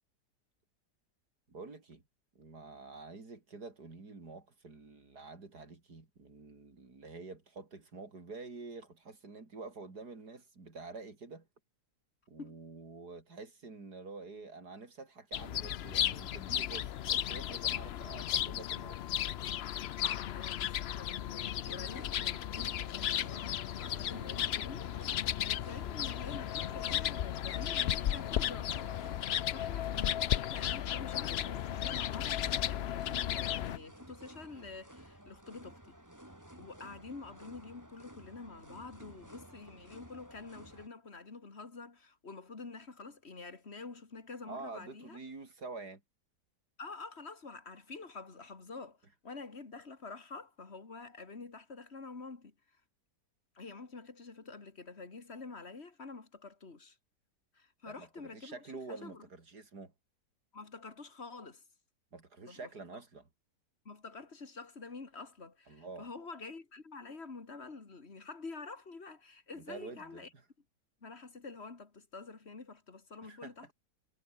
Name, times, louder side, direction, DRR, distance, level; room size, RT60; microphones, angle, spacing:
voice 1, 1.5-2.0 2.4-11.5 12.3-19.0 26.6-26.7 44.5-46.0 57.9-59.9 62.1-63.3 65.7-66.1 69.6-70.3 73.2-73.7, right 3 dB, 65° right, 4.3 m, -48 dB
sound 1, 15.3-33.8, left 11 dB, 85° left, 0.5 m, -34 dB
voice 2, 20.3-36.0 36.6-45.2 46.8-49.0 49.2-52.5 53.5-57.0 57.5-59.2 60.5-61.6 62.5-62.7 63.8-70.3 71.0-73.7, left 4 dB, 40° left, 2.6 m, -48 dB
sound 2, 21.6-40.9, right 1 dB, 10° right, 4.1 m, -54 dB
omnidirectional pair, 1.8 m